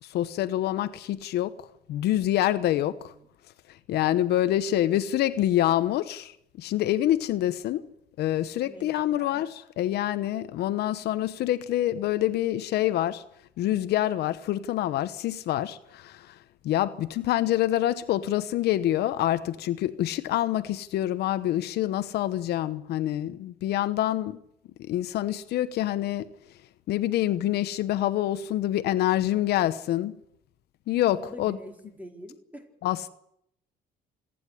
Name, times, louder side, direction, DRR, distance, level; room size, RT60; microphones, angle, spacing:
voice 1, 0.0-1.5 1.9-3.1 3.9-7.9 8.2-13.2 13.6-16.3 16.6-24.4 24.8-26.3 26.9-30.1 30.9-31.6 32.8-33.1, left 13 dB, 75° left, 1.0 m, -26 dB
voice 2, 2.7-3.3 8.6-9.4 31.1-32.7, equal, 10° right, 4.6 m, -46 dB
27.5 x 10.5 x 9.9 m
cardioid pair, 110°, 17 cm